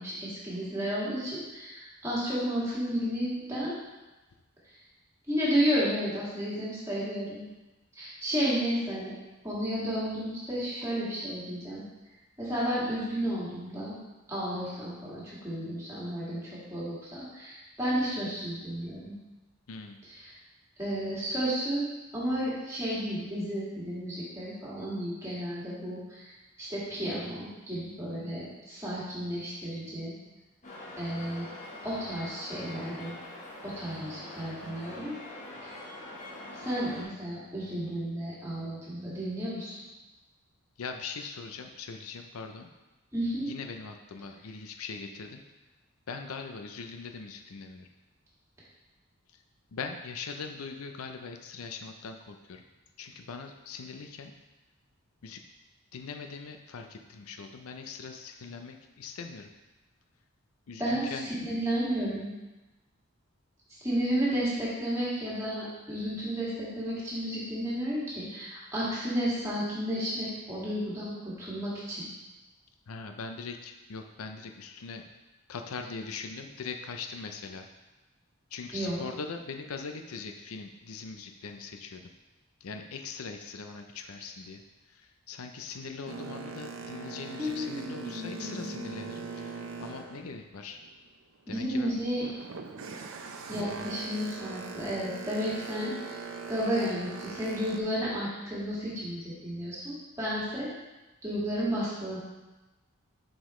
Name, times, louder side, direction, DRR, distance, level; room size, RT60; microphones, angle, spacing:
voice 1, 0.0-3.8 5.3-7.4 7.9-9.1 9.4-11.8 12.4-13.9 14.3-19.1 20.1-20.3 20.8-21.9 22.1-26.3 26.6-30.1 31.0-31.5 31.8-33.1 33.6-35.2 35.6-35.7 36.5-39.8 43.1-43.5 60.8-62.3 63.8-72.0 78.7-79.0 87.4-88.8 91.5-92.2 93.5-96.2 96.5-100.7 101.2-102.2, equal, 15° right, -9 dB, 2.0 m, -32 dB
voice 2, 19.7-20.0 40.8-42.7 43.5-45.4 46.1-47.9 49.3-49.4 49.7-52.6 53.0-54.3 55.2-55.4 55.9-59.5 60.7-61.3 72.9-75.0 75.5-77.7 78.5-82.1 82.6-84.6 84.9-90.8 91.5-92.0 93.7-93.9, left 5 dB, 85° left, 5 dB, 0.5 m, -41 dB
sound 1, 30.6-37.0, left 1 dB, 35° left, 1.1 m, -44 dB
Boat Water vehicle, 86.1-91.1 91.5-97.8, right 4 dB, 75° right, 0.5 m, -41 dB
7.4 x 5.0 x 3.1 m, 1.1 s
head